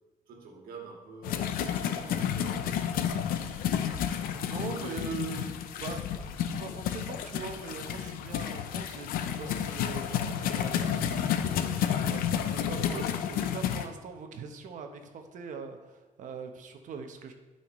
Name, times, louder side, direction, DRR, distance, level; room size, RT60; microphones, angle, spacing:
voice 1, 0.3-4.1 4.5-5.5 12.8-13.2, right 3 dB, 85° right, 1 dB, 1.8 m, -47 dB
sound 1, 1.2-13.9, left 9 dB, 90° left, 0.6 m, -31 dB
voice 2, 4.2-6.0 6.6-17.3, right 5 dB, 60° right, 5 dB, 1.0 m, -42 dB
12.0 x 5.7 x 3.2 m, 1.2 s
cardioid pair, 125°, 14 cm